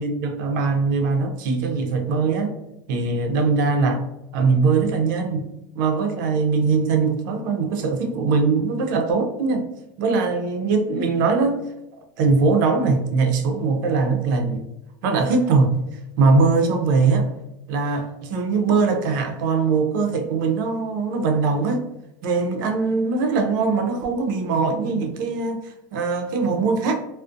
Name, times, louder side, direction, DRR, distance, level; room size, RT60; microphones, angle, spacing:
voice 1, 0.0-2.5 2.9-4.1 4.3-5.5 5.7-9.7 10.0-11.6 12.2-14.6 15.0-17.3 17.7-21.8 22.2-26.9, right 4 dB, 70° right, 4 dB, 0.5 m, -21 dB
2.5 x 2.1 x 2.4 m, 0.90 s
supercardioid pair, 120°, 11 cm